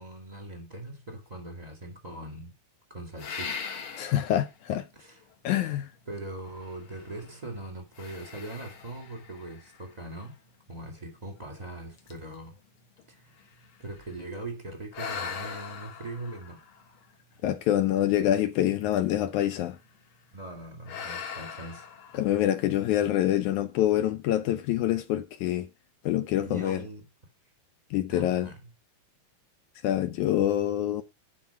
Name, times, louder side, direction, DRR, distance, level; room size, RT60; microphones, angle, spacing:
voice 1, 0.0-2.5 2.9-3.6 4.9-5.3 6.1-10.4 10.7-12.6 13.1-13.4 13.8-16.6 20.3-21.9 26.4-27.1 28.1-28.7 30.1-30.2, right 2 dB, 20° right, 1.3 m, -41 dB
sound 1, 3.2-4.5 5.1-5.2 6.5-7.4 7.9-10.3 11.0-11.1 11.6-11.7 12.0-14.3 14.9-17.6 18.8-19.3 19.6-20.0 20.8-22.7, left 6 dB, 55° left, 1.5 m, -41 dB
voice 2, 4.0-4.9 5.4-5.9 17.4-19.8 22.1-25.7 26.0-26.8 27.9-28.5 29.8-31.0, left 12 dB, 80° left, 1.7 m, -26 dB
12.0 x 4.7 x 5.7 m
omnidirectional pair, 4.1 m